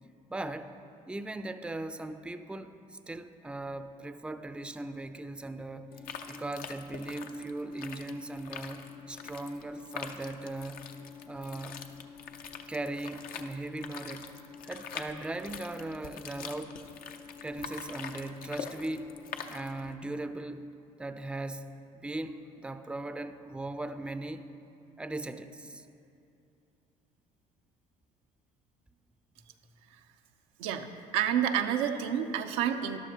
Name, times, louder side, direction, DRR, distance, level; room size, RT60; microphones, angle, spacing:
voice 1, 0.3-0.7 1.1-5.9 6.3-10.9 11.3-11.9 12.7-14.3 14.6-16.8 17.4-19.1 19.5-20.7 21.0-24.5 25.0-25.9, right 2 dB, 5° right, 10 dB, 0.5 m, -38 dB
sound 1, 5.9-19.9, left 6 dB, 60° left, 0.7 m, -44 dB
voice 2, 31.1-33.0, right 9 dB, 85° right, 6 dB, 0.5 m, -29 dB
12.5 x 11.5 x 2.8 m, 2.7 s
supercardioid pair, 70°, 17 cm